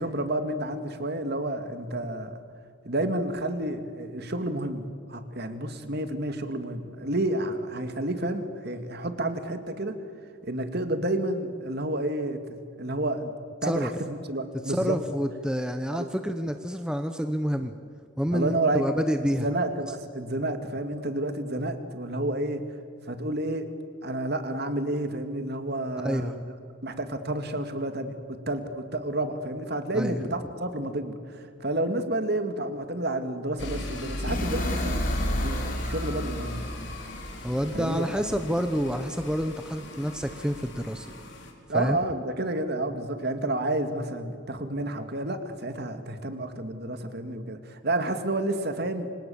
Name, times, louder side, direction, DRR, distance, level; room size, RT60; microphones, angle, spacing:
voice 1, 0.0-2.4 2.8-9.9 10.5-13.3 13.6-15.0 15.9-16.1 18.3-18.9 19.2-22.6 23.1-23.7 24.0-26.3 26.8-31.1 31.6-36.7 37.7-38.0 41.7-49.1, right 1 dB, 50° right, 8 dB, 2.2 m, -30 dB
voice 2, 13.6-13.9 14.6-17.7 18.2-19.5 26.0-26.4 29.9-30.2 37.4-41.1 41.7-42.0, equal, 5° right, 7 dB, 0.9 m, -28 dB
sound 1, 33.6-41.5, left 1 dB, 55° left, 4.4 m, -36 dB
sound 2, 34.3-38.2, left 1 dB, 40° left, 4.5 m, -32 dB
29.0 x 26.0 x 7.2 m, 2.4 s
head